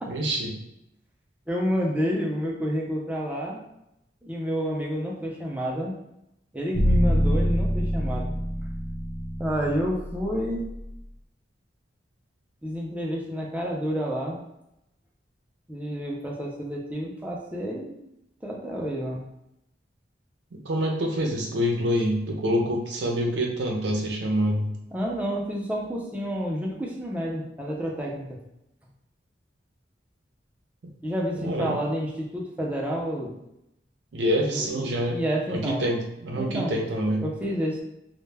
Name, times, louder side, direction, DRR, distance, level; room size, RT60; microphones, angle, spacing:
voice 1, 0.1-0.5 20.5-24.7 31.3-31.8 34.1-35.2 35.5-37.3, equal, 75° right, 0 dB, 0.6 m, -26 dB
voice 2, 1.5-3.6 4.2-6.0 6.5-8.4 9.4-10.6 12.6-14.4 15.7-18.1 18.4-19.2 24.9-28.4 31.0-33.4 34.4-35.9 36.3-36.7 37.2-37.8, equal, 10° right, -2 dB, 0.4 m, -29 dB
sound 1, 6.7-10.9, equal, 60° left, 0.7 m, -25 dB
2.2 x 2.0 x 3.2 m, 0.83 s
head